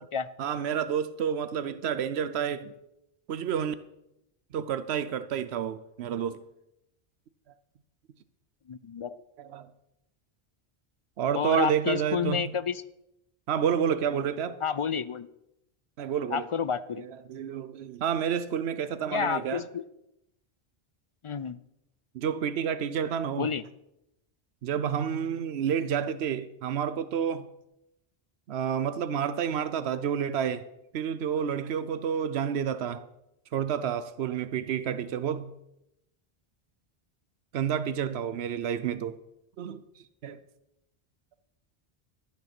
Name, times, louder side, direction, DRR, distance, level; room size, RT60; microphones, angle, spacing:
voice 1, 0.4-2.7 3.3-3.7 4.5-6.4 9.4-9.7 11.2-12.5 13.5-14.6 16.0-16.5 17.3-19.6 22.1-23.5 24.6-27.5 28.5-30.7 30.9-33.0 33.5-35.5 37.5-39.2 39.6-39.8 40.2-40.4, right 8 dB, 90° right, 0.9 m, -29 dB
voice 2, 8.7-9.2 11.4-12.8 14.6-15.3 16.3-17.0 19.1-19.8 21.2-21.6 23.4-23.6, left 7 dB, 50° left, 0.3 m, -30 dB
13.0 x 9.3 x 5.9 m
omnidirectional pair, 1.0 m